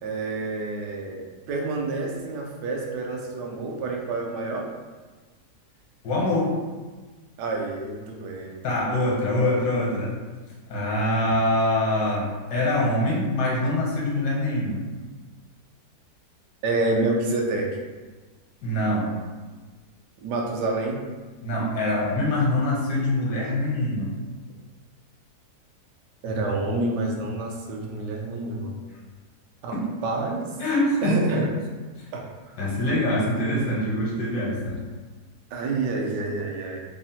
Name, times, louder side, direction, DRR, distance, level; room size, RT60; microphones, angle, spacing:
voice 1, 0.0-4.7 7.4-8.9 16.6-17.8 20.2-21.0 26.2-28.8 29.6-30.6 31.0-31.5 32.1-32.5 35.5-36.8, right 2 dB, 85° right, 0 dB, 1.2 m, -28 dB
voice 2, 6.0-6.6 8.6-10.1 10.7-14.8 18.6-19.2 21.4-24.1 29.7-29.8 30.6-31.4 32.6-34.8, left 1 dB, 80° left, -5 dB, 1.4 m, -24 dB
3.4 x 2.0 x 2.7 m, 1.3 s
omnidirectional pair, 1.8 m